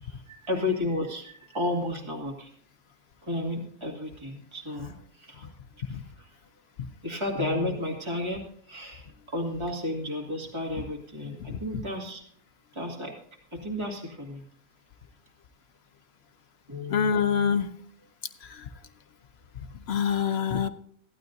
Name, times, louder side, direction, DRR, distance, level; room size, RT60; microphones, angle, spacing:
voice 1, 0.0-2.5 3.2-5.5 5.9-6.3 7.0-8.4 8.7-12.2 12.7-13.1 13.5-14.4 16.7-17.1, left 2 dB, 20° right, -1 dB, 2.1 m, -32 dB
voice 2, 16.9-17.7 18.4-18.7 19.9-20.7, left 7 dB, 55° left, 9 dB, 0.8 m, -26 dB
16.5 x 12.0 x 2.6 m, 0.63 s
omnidirectional pair, 1.6 m